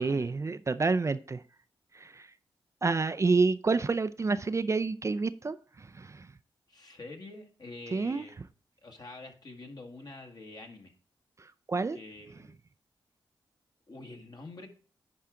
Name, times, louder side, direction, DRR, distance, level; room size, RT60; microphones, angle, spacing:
voice 1, 0.0-1.4 1.9-2.3 2.8-6.3 7.9-8.2 11.4-12.0, right 4 dB, 30° right, 13 dB, 0.4 m, -29 dB
voice 2, 6.7-8.4 8.8-10.9 11.9-12.5 13.9-14.7, left 2 dB, 50° left, 4 dB, 1.7 m, -46 dB
10.0 x 4.7 x 3.7 m, 0.41 s
cardioid pair, 65°, 9 cm